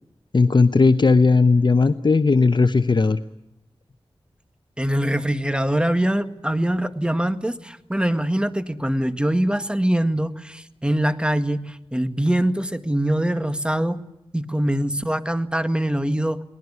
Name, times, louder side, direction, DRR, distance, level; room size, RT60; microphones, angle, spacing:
voice 1, 0.3-3.2, left 4 dB, 50° left, 11 dB, 0.8 m, -17 dB
voice 2, 4.8-14.0 14.3-16.4, right 1 dB, 10° right, 11 dB, 1.7 m, -23 dB
24.0 x 19.0 x 9.6 m, 0.89 s
cardioid pair, 45°, 10 cm